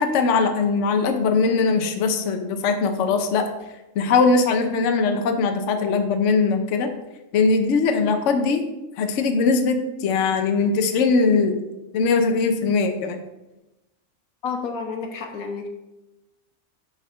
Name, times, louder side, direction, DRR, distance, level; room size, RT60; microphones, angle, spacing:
voice 1, 0.0-3.5 4.0-6.9 7.3-8.7 9.0-11.6 11.9-13.2, left 4 dB, 65° left, 5 dB, 1.0 m, -20 dB
voice 2, 14.4-15.7, left 5 dB, 90° left, 4 dB, 1.5 m, -30 dB
7.6 x 4.2 x 6.1 m, 1.0 s
omnidirectional pair, 1.4 m